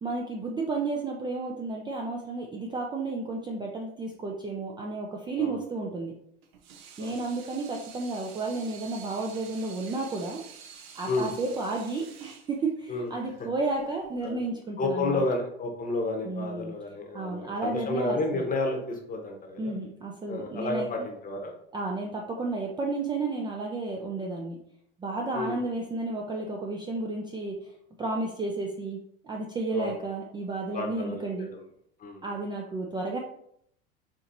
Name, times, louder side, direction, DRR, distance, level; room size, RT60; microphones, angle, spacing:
voice 1, 0.0-6.1 7.0-10.4 11.0-15.2 16.2-16.7 17.1-18.5 19.6-21.1 21.7-24.6 25.0-27.5 28.0-29.0 29.2-31.5 32.2-33.2, right 3 dB, 15° right, 0 dB, 0.3 m, -32 dB
voice 2, 5.4-5.8 7.0-7.2 11.1-11.3 12.9-13.1 14.2-14.4 14.8-19.7 20.3-21.6 25.3-25.6 29.7-30.0 30.7-31.6 32.0-32.2, left 2 dB, 25° left, 3 dB, 0.9 m, -31 dB
Water tap faucet / Sink (filling or washing), 6.4-14.5, right 7 dB, 80° right, 0.6 m, -49 dB
4.3 x 2.8 x 2.6 m, 0.71 s
hypercardioid pair, 100°, 31 cm